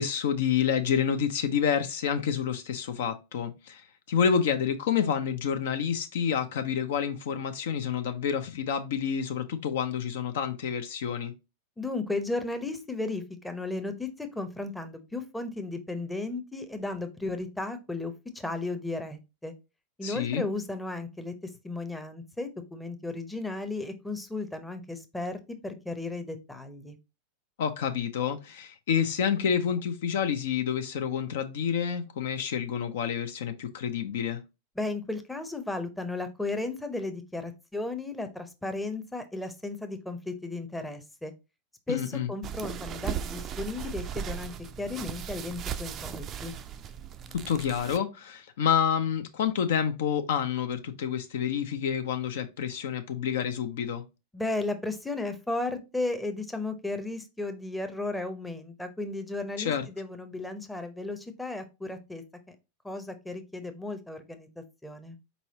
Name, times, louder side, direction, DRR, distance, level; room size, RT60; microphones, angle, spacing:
voice 1, 0.0-11.3 20.0-20.4 27.6-34.4 41.9-42.3 47.5-54.0 59.6-59.9, left 8 dB, 55° left, 0.5 m, -28 dB
voice 2, 11.8-19.5 20.0-27.0 34.8-41.3 41.9-44.5 44.8-46.5 54.3-62.5 62.8-65.2, left 2 dB, 5° left, 0.7 m, -35 dB
sound 1, 42.4-48.0, right 9 dB, 30° right, 0.4 m, -37 dB
4.5 x 4.1 x 2.8 m
figure-of-eight pair, 90°, 0 cm